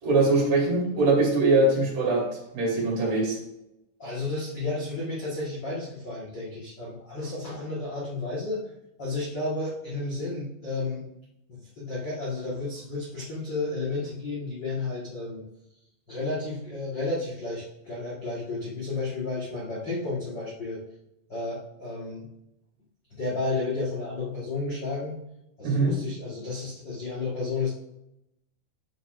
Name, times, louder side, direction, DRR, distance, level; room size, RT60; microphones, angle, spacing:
voice 1, 0.0-2.2 2.5-3.4 25.6-25.9, right 2 dB, 55° right, -3 dB, 4.3 m, -22 dB
voice 2, 4.0-8.6 9.0-11.1 11.5-15.4 16.1-20.8 21.3-22.3 23.1-25.2 25.6-27.7, left 3 dB, 65° left, -8 dB, 1.0 m, -32 dB
12.0 x 6.3 x 2.6 m, 0.86 s
omnidirectional pair, 5.0 m